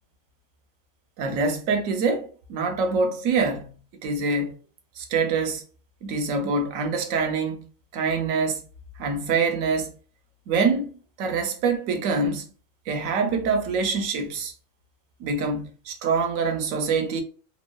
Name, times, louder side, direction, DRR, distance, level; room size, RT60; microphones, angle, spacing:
voice 1, 1.2-4.5 5.0-5.6 6.0-7.7 7.9-8.6 9.0-9.9 10.5-10.9 11.2-12.4 12.9-14.5 15.2-17.2, right 4 dB, 80° right, 1.0 m, -25 dB
2.9 x 2.0 x 2.2 m
omnidirectional pair, 1.4 m